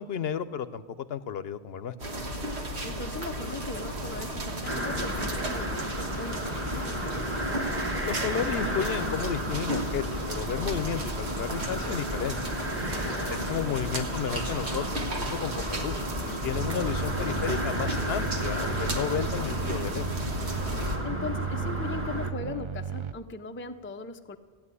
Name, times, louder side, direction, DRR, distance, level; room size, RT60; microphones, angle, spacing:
voice 1, 0.0-1.9 8.0-12.4 13.5-20.1, left 8 dB, 70° left, 14 dB, 0.9 m, -32 dB
sound 1, 2.0-21.0, right 1 dB, 85° right, 1.7 m, -34 dB
voice 2, 2.8-7.4 12.9-13.7 21.0-24.4, left 3 dB, 15° left, 8 dB, 0.5 m, -39 dB
sound 2, 4.7-22.3, equal, 10° right, 1.4 m, -34 dB
sound 3, 16.5-23.1, right 6 dB, 45° right, 0.4 m, -35 dB
15.0 x 8.9 x 9.8 m, 1.5 s
omnidirectional pair, 1.1 m